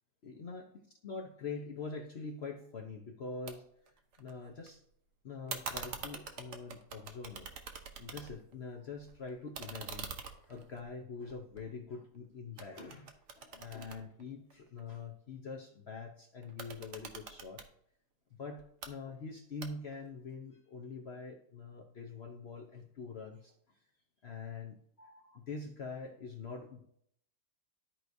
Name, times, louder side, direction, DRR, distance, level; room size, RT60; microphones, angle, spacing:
voice 1, 0.2-3.6 4.2-4.8 5.2-7.5 8.0-10.1 10.5-17.6 18.3-23.8 24.2-26.8, left 4 dB, 55° left, 2 dB, 0.7 m, -44 dB
sound 1, 3.5-3.6 3.9-4.7 5.5-8.6 8.9-12.2 12.6-14.8 16.4-17.7 18.6-18.9 19.6-20.1, right 5 dB, 55° right, 0.9 m, -45 dB
13.0 x 4.7 x 2.6 m, 0.69 s
omnidirectional pair, 1.9 m